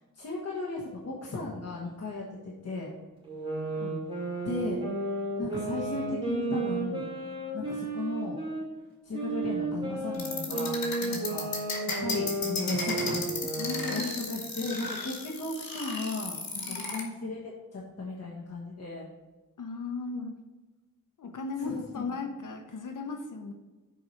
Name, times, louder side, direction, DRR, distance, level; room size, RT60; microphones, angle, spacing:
voice 1, 0.1-2.9 4.4-4.8 5.4-7.1 7.5-8.4 9.0-10.8 11.1-11.5 12.0-13.3 13.6-14.0 14.3-17.4 17.7-19.1 21.6-22.1, left 3 dB, 45° left, -4 dB, 1.4 m, -36 dB
sound 1, 3.2-8.6 9.1-14.0, right 2 dB, 15° right, 2.6 m, -33 dB
sound 2, 10.1-17.0, left 3 dB, 90° left, 2.0 m, -34 dB
voice 2, 13.6-14.3 16.7-17.1 19.6-20.4 21.2-23.5, left 4 dB, 65° left, 6 dB, 0.8 m, -37 dB
7.2 x 4.8 x 5.7 m, 1.3 s
wide cardioid pair, 165°, 34 cm